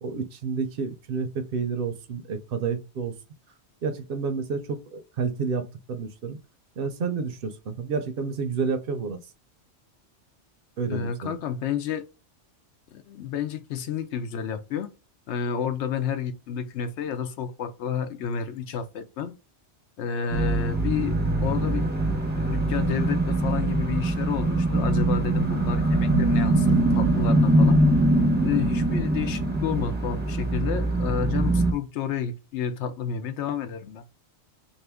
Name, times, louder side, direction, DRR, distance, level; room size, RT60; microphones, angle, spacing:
voice 1, 0.0-3.1 3.8-6.4 6.8-9.2 10.8-11.4, right 5 dB, 60° right, 0.7 m, -30 dB
voice 2, 10.9-12.0 12.9-14.9 15.3-19.3 20.0-21.1 21.4-21.9 22.3-27.8 28.4-34.0, left 7 dB, 85° left, 0.9 m, -30 dB
sound 1, 20.3-31.7, right 1 dB, 10° right, 0.6 m, -23 dB
2.7 x 2.6 x 3.4 m
omnidirectional pair, 1.1 m